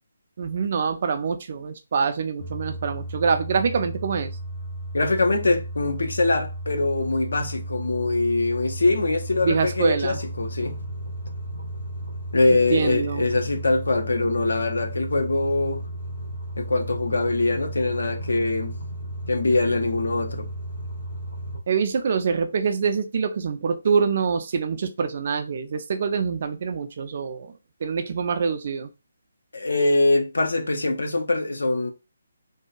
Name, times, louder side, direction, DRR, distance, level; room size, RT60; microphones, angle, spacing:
voice 1, 0.4-4.3 9.4-10.2 12.7-13.3 21.7-27.5 27.8-28.9, right 5 dB, 45° right, 0.3 m, -25 dB
sound 1, 2.4-21.6, right 1 dB, 85° left, 1.2 m, -34 dB
voice 2, 4.9-10.8 12.3-15.8 16.6-18.8 19.3-20.5 29.5-31.9, left 2 dB, 70° left, 0.5 m, -23 dB
2.7 x 2.2 x 2.4 m
figure-of-eight pair, 145°, 0 cm